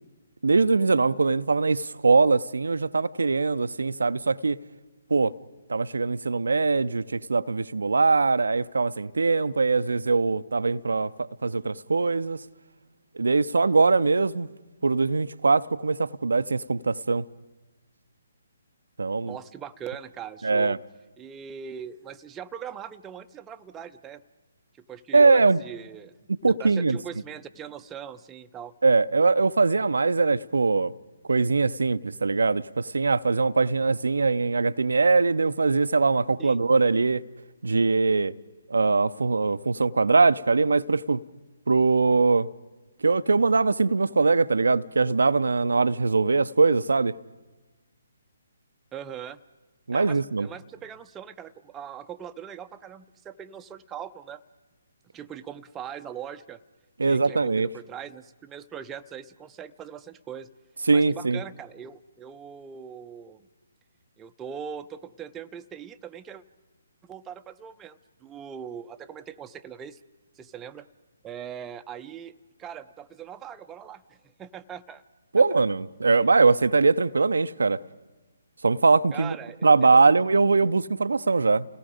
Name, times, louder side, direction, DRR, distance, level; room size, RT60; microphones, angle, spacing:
voice 1, 0.4-4.6 5.1-5.3 5.7-12.4 13.2-14.5 14.8-17.2 19.0-19.4 20.4-20.8 25.1-25.6 26.3-27.0 28.8-30.9 31.3-37.2 37.6-38.3 38.7-41.2 41.7-42.5 43.0-47.1 49.9-50.5 57.0-57.7 60.9-61.4 75.3-77.8 78.6-79.4 79.6-81.6, right 4 dB, 75° right, 0.6 m, -22 dB
voice 2, 19.3-20.8 21.2-24.2 24.8-26.1 26.4-28.7 36.4-36.6 48.9-49.4 49.9-54.4 55.1-56.6 57.0-60.5 60.9-63.4 64.2-66.4 67.0-70.0 70.4-70.9 71.2-72.3 72.6-75.0 75.4-75.6 76.0-76.2 79.1-80.0, right 8 dB, 15° right, 0.6 m, -41 dB
29.5 x 18.5 x 5.0 m
figure-of-eight pair, 140°, 0 cm